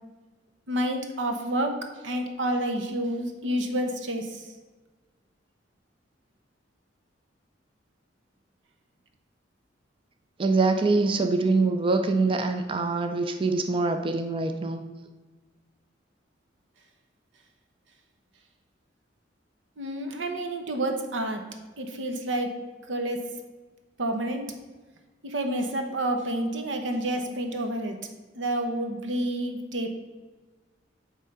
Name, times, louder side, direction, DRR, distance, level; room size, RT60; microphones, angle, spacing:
voice 1, 0.7-4.5 19.8-21.5 21.8-22.6 22.9-23.3 24.0-24.5 25.2-28.0 28.3-29.9, right 1 dB, 85° right, 5 dB, 1.0 m, -29 dB
voice 2, 10.4-14.8, right 3 dB, 30° right, 6 dB, 0.4 m, -24 dB
8.7 x 3.6 x 5.6 m, 1.3 s
head